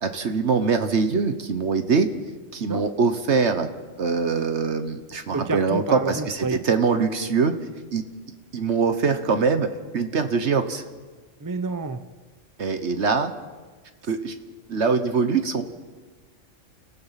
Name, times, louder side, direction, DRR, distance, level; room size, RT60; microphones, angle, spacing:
voice 1, 0.0-2.1 2.5-3.7 4.0-7.5 7.9-8.0 8.5-9.7 9.9-10.8 12.6-13.3 14.1-14.3 14.7-15.6, right 5 dB, 65° right, 1.4 m, -23 dB
voice 2, 5.3-6.6 11.4-12.0, right 3 dB, 20° right, 0.6 m, -29 dB
30.0 x 15.0 x 5.8 m
omnidirectional pair, 1.3 m